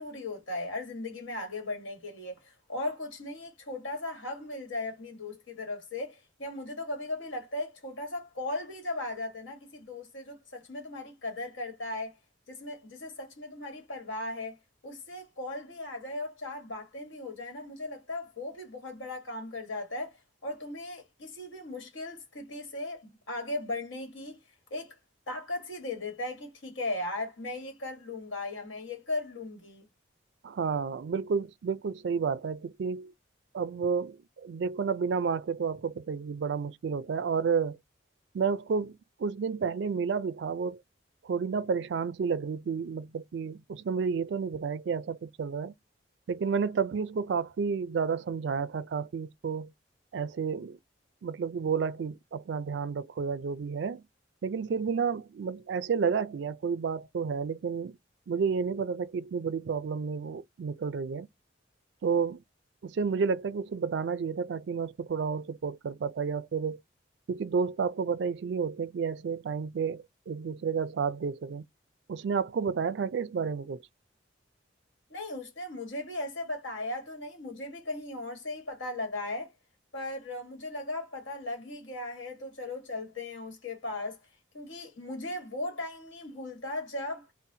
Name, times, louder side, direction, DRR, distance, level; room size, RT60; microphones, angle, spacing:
voice 1, 0.0-12.2 12.5-14.6 14.8-24.4 24.7-24.9 25.3-29.9 75.1-79.5 79.9-84.2 84.5-87.3, left 2 dB, 80° left, 1.3 m, -37 dB
voice 2, 30.4-33.1 33.5-37.8 38.3-40.8 41.2-45.7 46.3-49.7 50.1-50.8 51.2-54.0 54.4-58.0 58.3-61.3 62.0-62.4 62.8-66.8 67.3-71.6 72.1-73.8, right 5 dB, 65° right, 0.3 m, -31 dB
4.0 x 2.1 x 2.7 m
head